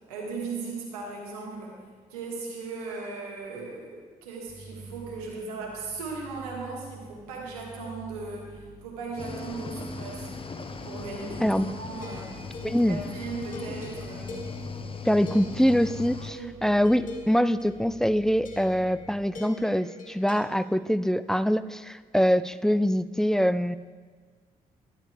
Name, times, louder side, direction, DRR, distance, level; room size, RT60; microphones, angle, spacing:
voice 1, 0.1-1.8 2.1-10.3 10.8-12.3 12.7-14.4 16.3-16.6, right 4 dB, 85° right, -1 dB, 1.8 m, -37 dB
sound 1, 4.5-19.2, right 3 dB, 20° right, 0.9 m, -48 dB
Cricket / Waves surf, 9.2-16.3, left 4 dB, 30° left, 1.0 m, -38 dB
sound 2, 12.0-16.3 16.8-20.4, left 3 dB, 45° left, 1.9 m, -44 dB
voice 2, 12.6-13.0 15.0-23.8, equal, 5° left, 14 dB, 0.4 m, -24 dB
11.5 x 10.5 x 3.4 m, 1.5 s
hypercardioid pair, 45°, 19 cm